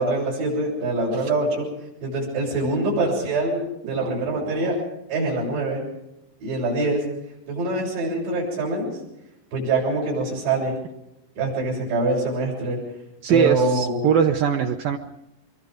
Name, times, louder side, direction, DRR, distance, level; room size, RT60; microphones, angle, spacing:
voice 1, 0.0-1.7 2.0-4.8 5.1-5.9 6.4-7.0 7.5-8.9 9.5-10.7 11.4-12.8 13.3-14.0, right 2 dB, 85° right, -4 dB, 9.6 m, -24 dB
voice 2, 3.9-4.7 13.2-15.0, right 7 dB, 70° right, 2 dB, 2.4 m, -22 dB
25.0 x 23.0 x 5.2 m, 0.87 s
omnidirectional pair, 4.8 m